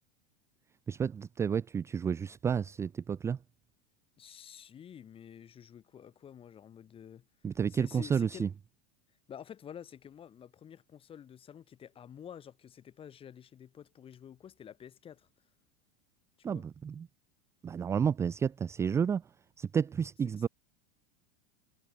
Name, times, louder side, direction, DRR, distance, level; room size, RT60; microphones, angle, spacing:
voice 1, 0.9-3.4 7.4-8.5 16.4-17.1 17.6-19.2 19.6-20.5, right 7 dB, 10° right, 0.5 m, -31 dB
voice 2, 4.2-7.3 7.7-8.5 9.3-15.3 16.4-16.7, left 9 dB, 20° left, 5.5 m, -49 dB
supercardioid pair, 175°, 29 cm